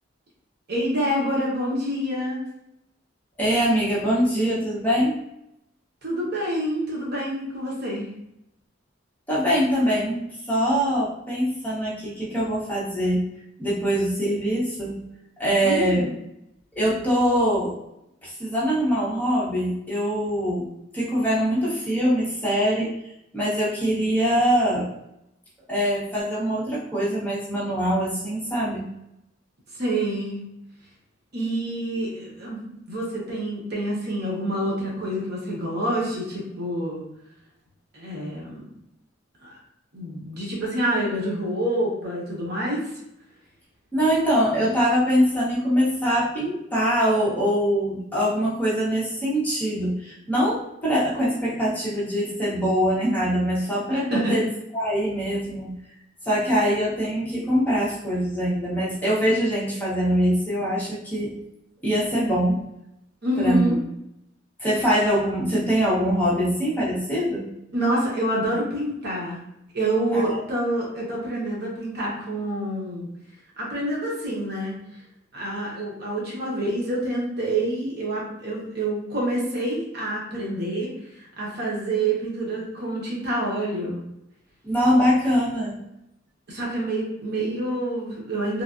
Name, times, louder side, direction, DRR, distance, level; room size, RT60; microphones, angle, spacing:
voice 1, 0.7-2.5 6.0-8.1 15.6-16.0 29.8-30.4 31.3-37.0 37.9-38.7 39.4-39.6 39.9-42.9 53.9-54.3 63.2-63.8 67.7-69.4 69.7-73.1 73.6-74.7 75.3-84.0 86.5-88.6, right 1 dB, 55° right, -3 dB, 0.9 m, -27 dB
voice 2, 3.4-5.2 9.3-13.2 13.6-15.0 15.4-16.1 16.8-17.7 18.2-20.6 20.9-23.0 23.3-24.9 25.7-28.9 43.9-54.5 54.7-55.7 56.2-61.3 61.8-62.6 63.4-63.7 64.6-67.5 70.1-70.4 84.6-85.8, equal, 10° left, -8 dB, 0.9 m, -23 dB
3.2 x 2.3 x 2.5 m, 0.82 s
head